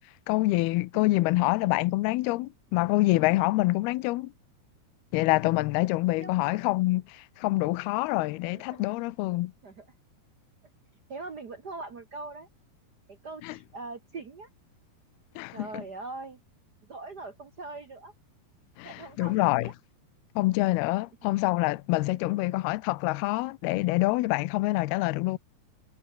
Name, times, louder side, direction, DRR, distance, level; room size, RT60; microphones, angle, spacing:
voice 1, 0.3-4.3 5.1-9.5 13.4-13.6 15.4-15.8 18.8-19.7 20.4-25.4, left 20 dB, 80° left, 2.6 m, -26 dB
voice 2, 6.1-6.6 8.5-9.0 9.6-9.8 11.1-12.5 13.1-14.5 15.5-16.4 16.9-18.1 18.8-19.7 22.2-22.3 24.8-24.9, right 3 dB, 80° right, 0.9 m, -42 dB
omnidirectional pair, 4.7 m